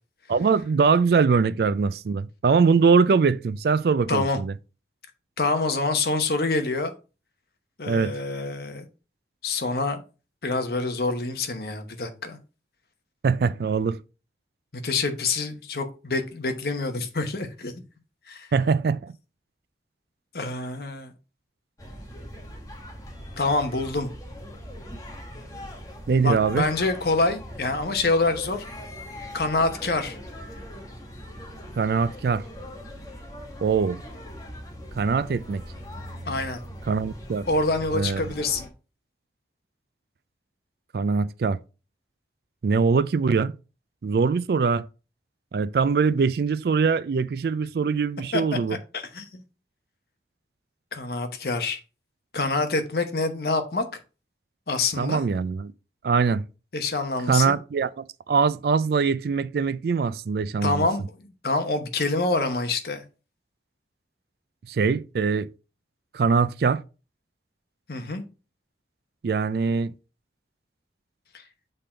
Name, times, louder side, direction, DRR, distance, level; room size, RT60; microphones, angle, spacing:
voice 1, 0.3-4.5 7.9-8.1 13.2-14.0 18.5-19.1 26.1-26.7 31.8-32.5 33.6-34.0 35.0-35.6 36.9-37.5 37.9-38.3 40.9-41.6 42.6-43.5 44.0-44.9 45.5-48.8 55.0-55.7 56.0-56.4 57.3-60.9 64.7-65.5 66.1-66.8 69.2-69.9, right 5 dB, 60° right, 0.3 m, -22 dB
voice 2, 4.1-4.4 5.4-6.9 7.8-8.9 9.4-10.0 10.4-12.4 14.8-17.7 18.3-18.5 20.3-21.1 23.4-24.1 26.2-28.6 29.3-30.2 36.3-36.6 37.5-38.7 48.3-48.4 48.9-49.4 50.9-51.8 52.3-53.8 54.7-55.2 56.7-57.6 60.6-63.0 67.9-68.2, left 3 dB, 60° left, 1.0 m, -26 dB
sound 1, 21.8-38.7, equal, 20° left, 1.1 m, -40 dB
6.7 x 3.8 x 4.4 m
head